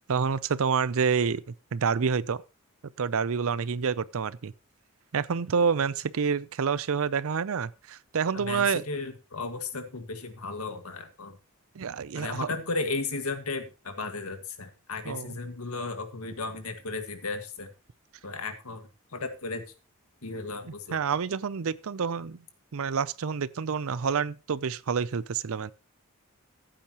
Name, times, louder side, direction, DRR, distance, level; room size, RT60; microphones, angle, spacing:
voice 1, 0.1-1.4 1.7-2.4 3.0-4.5 5.1-8.8 11.8-12.5 15.1-15.3 20.9-22.4 22.7-25.7, right 6 dB, 65° right, 0.5 m, -28 dB
voice 2, 8.3-11.4 12.1-17.7 18.2-19.6 20.2-21.0, left 3 dB, 75° left, 1.7 m, -35 dB
15.0 x 8.6 x 2.9 m
head